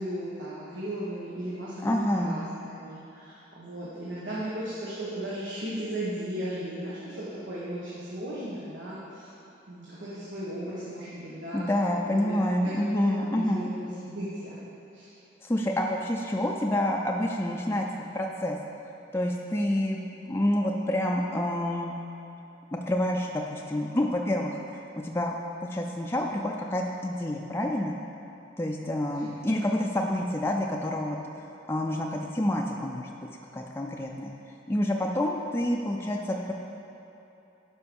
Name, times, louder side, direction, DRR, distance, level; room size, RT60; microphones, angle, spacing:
voice 1, 0.0-9.3 9.7-14.6 14.9-15.1 29.1-29.2, right 1 dB, 90° right, -8 dB, 1.7 m, -36 dB
voice 2, 1.8-2.4 11.5-13.7 15.4-18.6 19.1-20.0 20.3-21.9 22.7-24.6 25.0-25.4 25.6-27.9 28.6-34.3 34.7-36.5, left 1 dB, 15° left, -1 dB, 0.4 m, -28 dB
11.5 x 5.3 x 5.3 m, 2.9 s
head